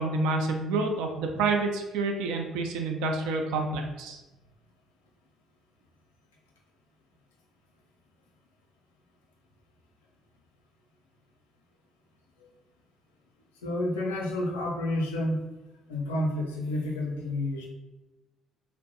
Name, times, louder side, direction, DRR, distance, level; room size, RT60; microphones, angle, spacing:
voice 1, 0.0-4.2, right 3 dB, 65° right, 3 dB, 0.3 m, -28 dB
voice 2, 13.6-15.4 15.9-17.7, left 1 dB, 75° left, -1 dB, 0.4 m, -30 dB
2.5 x 2.0 x 2.6 m, 1.0 s
figure-of-eight pair, 45°, 0 cm